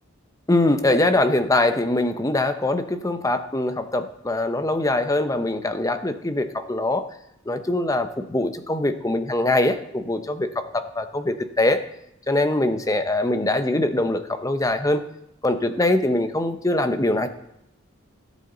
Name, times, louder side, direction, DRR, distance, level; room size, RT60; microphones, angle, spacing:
voice 1, 0.5-7.0 7.5-11.8 12.3-15.0 15.4-17.3, left 2 dB, 15° left, 9 dB, 0.7 m, -23 dB
17.0 x 8.4 x 3.9 m, 0.80 s
head